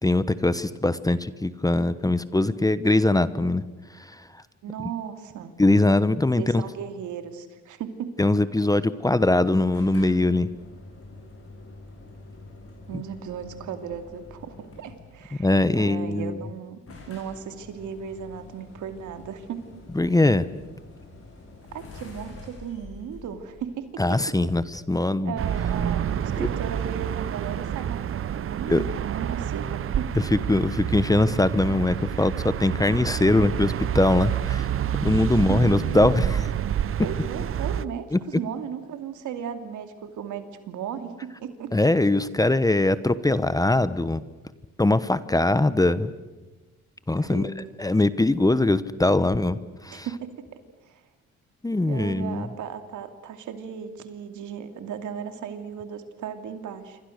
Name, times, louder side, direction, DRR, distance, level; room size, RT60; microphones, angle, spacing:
voice 1, 0.0-3.6 4.1-4.2 5.6-6.6 8.2-10.5 15.4-16.4 19.9-20.5 24.0-25.4 26.4-26.5 28.7-28.8 30.1-34.7 35.0-36.4 38.1-38.2 41.7-44.2 44.8-46.1 47.1-47.4 47.8-50.1 51.6-52.5, left 2 dB, 10° left, 14 dB, 1.0 m, -22 dB
voice 2, 4.6-5.5 6.4-8.1 12.9-15.5 15.7-16.8 17.1-19.6 21.7-24.0 25.2-30.1 35.3-36.1 37.0-41.7 47.2-47.5 49.9-50.3 50.9-51.0 51.9-57.0, right 8 dB, 75° right, 7 dB, 2.7 m, -36 dB
sound 1, 9.7-15.2 16.2-16.3 16.5-16.6 16.9-24.3, left 3 dB, 50° left, 7.8 m, -46 dB
sound 2, 25.4-37.8, right 9 dB, 45° right, 0.7 m, -28 dB
27.5 x 25.0 x 6.6 m, 1.2 s
cardioid pair, 90°, 30 cm